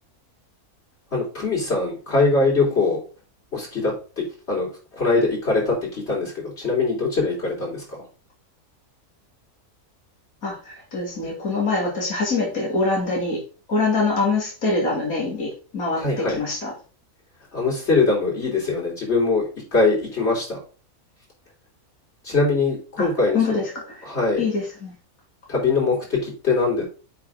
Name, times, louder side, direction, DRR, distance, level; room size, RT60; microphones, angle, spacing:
voice 1, 1.1-3.0 3.5-4.7 5.0-8.1 15.9-16.4 17.5-19.4 19.7-20.6 22.2-23.6 24.0-24.4 25.5-26.8, left 3 dB, 45° left, -4 dB, 4.2 m, -22 dB
voice 2, 10.4-13.4 13.7-16.7 23.0-24.1 24.4-24.9, left 3 dB, 70° left, -3 dB, 3.3 m, -24 dB
7.9 x 5.3 x 3.9 m, 0.36 s
omnidirectional pair, 1.6 m